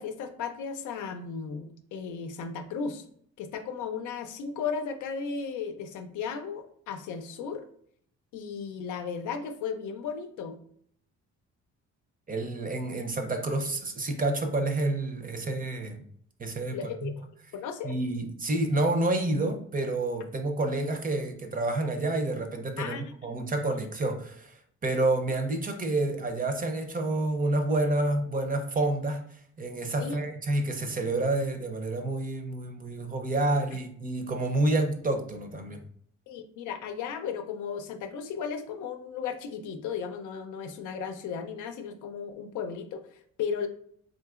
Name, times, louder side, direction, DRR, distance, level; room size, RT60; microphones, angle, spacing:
voice 1, 0.0-3.0 3.4-7.7 8.3-10.6 16.7-17.3 17.5-17.9 22.8-23.0 30.0-30.2 36.3-43.7, left 6 dB, 80° left, 6 dB, 0.5 m, -35 dB
voice 2, 12.3-16.0 16.4-17.1 17.8-35.8, right 2 dB, 30° right, 5 dB, 0.6 m, -29 dB
3.8 x 2.8 x 2.4 m, 0.62 s
cardioid pair, 90°, 30 cm